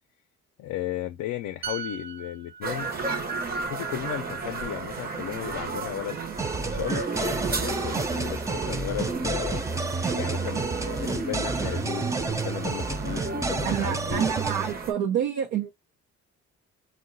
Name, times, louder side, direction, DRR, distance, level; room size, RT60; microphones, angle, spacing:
voice 1, 0.6-2.9 3.6-6.2 6.6-9.6 10.1-14.2, left 13 dB, 70° left, 0.5 m, -35 dB
sound 1, 1.6-5.2 5.5-5.8, right 7 dB, 60° right, 0.9 m, -42 dB
sound 2, 2.6-14.9, right 4 dB, 30° right, 0.7 m, -33 dB
sound 3, 6.4-14.7, right 3 dB, 10° right, 0.3 m, -30 dB
voice 2, 13.6-15.7, right 9 dB, 85° right, 0.7 m, -27 dB
3.7 x 2.2 x 2.5 m
cardioid pair, 90°, 30 cm